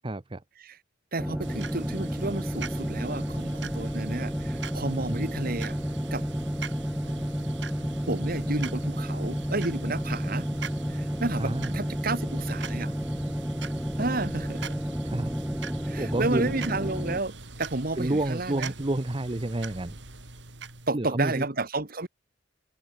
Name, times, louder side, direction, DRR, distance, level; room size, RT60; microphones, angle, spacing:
voice 1, 0.0-0.4 5.1-5.2 11.4-11.8 15.0-15.3 16.0-16.5 18.0-20.0 20.9-21.4, right 1 dB, 25° right, 0.8 m, -29 dB
voice 2, 1.1-5.8 6.1-6.2 8.1-10.5 10.9-12.9 14.0-14.8 15.8-18.7 20.9-22.1, right 2 dB, 50° right, 1.8 m, -31 dB
sound 1, 1.2-17.2, equal, 5° right, 0.5 m, -31 dB
sound 2, 1.4-20.9, right 4 dB, 65° right, 4.0 m, -42 dB
head